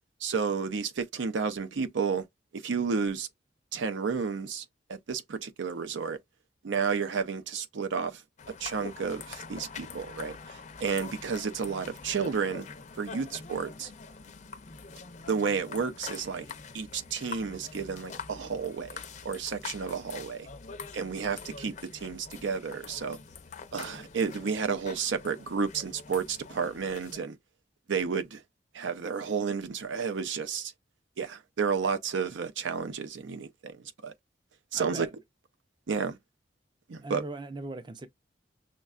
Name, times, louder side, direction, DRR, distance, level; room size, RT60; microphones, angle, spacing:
voice 1, 0.2-2.3 2.5-3.3 3.7-6.2 6.6-8.2 8.6-12.7 13.0-13.9 15.3-16.5 16.7-20.5 20.9-23.2 23.7-27.4 27.9-28.4 28.7-30.7 31.2-34.1 34.7-35.1 35.9-36.2 36.9-37.2, right 5 dB, 85° right, 0.5 m, -31 dB
sound 1, 8.4-27.2, left 5 dB, 40° left, 0.5 m, -45 dB
voice 2, 34.7-35.2 37.0-38.1, right 2 dB, 25° right, 0.4 m, -39 dB
6.2 x 2.2 x 2.4 m
head